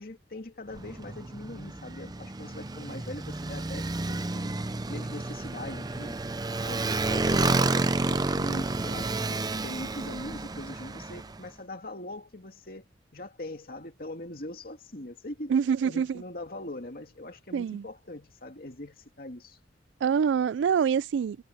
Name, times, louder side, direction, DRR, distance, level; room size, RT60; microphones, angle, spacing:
voice 1, 0.0-4.5 4.9-6.2 6.6-12.8 13.1-15.6 15.8-19.6, left 1 dB, 55° left, 2.4 m, -41 dB
Motorcycle, 0.7-11.4, right 2 dB, 20° right, 0.6 m, -30 dB
voice 2, 15.5-16.2 17.5-17.8 20.0-21.4, right 7 dB, 80° right, 0.3 m, -25 dB
head